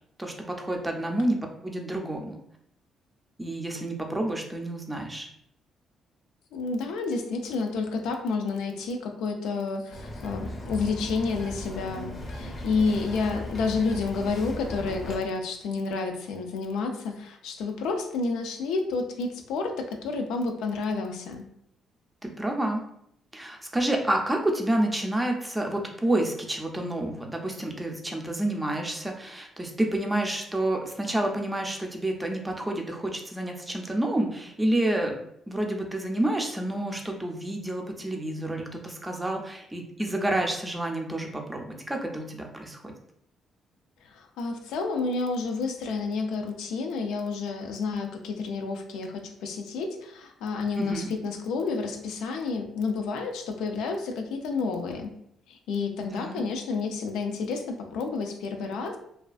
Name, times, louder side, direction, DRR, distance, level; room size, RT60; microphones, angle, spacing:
voice 1, 0.2-1.4 1.6-2.4 3.4-5.3 22.2-22.8 23.3-35.1 35.5-42.9 50.8-51.1 56.1-56.4, right 1 dB, 15° right, 2 dB, 0.4 m, -29 dB
voice 2, 6.5-21.4 44.0-55.1 55.5-59.0, left 4 dB, 90° left, 4 dB, 0.3 m, -30 dB
Bird vocalization bird call bird song, 9.9-15.2, left 1 dB, 40° left, 0.6 m, -37 dB
2.4 x 2.3 x 2.3 m, 0.72 s
cardioid pair, 90°, 0 cm